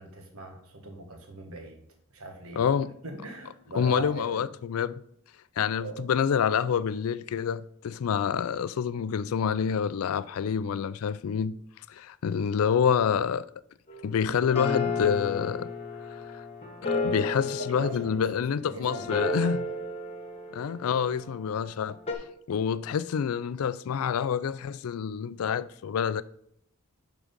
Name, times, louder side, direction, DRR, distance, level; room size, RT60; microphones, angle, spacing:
voice 1, 0.0-1.8 2.1-2.6 3.0-4.5 5.8-6.0 17.4-18.3 18.7-19.8, right 2 dB, 75° right, 1.4 m, -39 dB
voice 2, 2.6-2.9 3.7-5.0 5.6-11.5 11.9-13.5 14.0-15.7 16.3-16.4 16.8-19.6 20.5-22.0 22.5-26.2, left 7 dB, 70° left, 0.4 m, -27 dB
sound 1, 13.9-21.3 22.1-22.2, left 3 dB, 30° left, 1.2 m, -33 dB
11.0 x 3.8 x 5.2 m
head